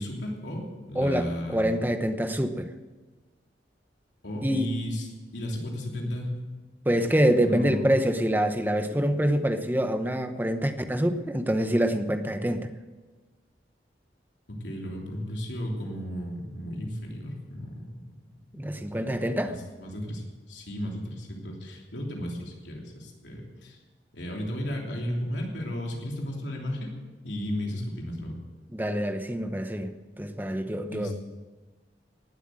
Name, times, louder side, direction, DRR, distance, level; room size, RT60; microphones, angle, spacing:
voice 1, 0.0-1.7 4.2-6.4 6.9-7.0 7.3-7.9 14.5-18.0 18.5-19.2 19.5-23.8 24.1-26.9 27.2-28.4 30.9-31.1, equal, 90° left, -1 dB, 3.1 m, -34 dB
voice 2, 1.0-2.7 4.4-4.7 6.9-12.7 18.5-19.5 28.7-31.1, equal, 10° right, 8 dB, 0.9 m, -26 dB
18.5 x 7.9 x 7.7 m, 1.3 s
head